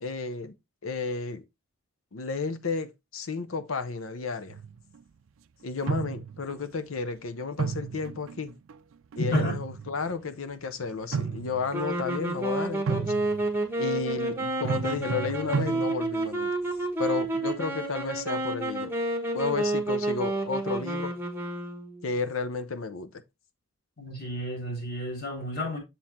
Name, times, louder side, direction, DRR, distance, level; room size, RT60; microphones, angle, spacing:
voice 1, 0.0-0.5 0.8-1.4 2.1-4.6 5.6-8.5 9.2-13.1 13.8-16.5 17.0-18.9 19.3-21.2 22.0-23.2, left 4 dB, 75° left, 0.8 m, -32 dB
sound 1, 4.5-5.0 5.8-6.6 7.6-8.7 9.1-10.3 10.9-11.8 12.9-13.6 14.6-16.3, right 6 dB, 65° right, 0.4 m, -33 dB
voice 2, 9.2-9.6 24.0-25.8, left 1 dB, 50° left, 3.6 m, -31 dB
sound 2, 11.7-22.1, right 2 dB, 10° right, 1.3 m, -30 dB
7.1 x 4.5 x 3.6 m
head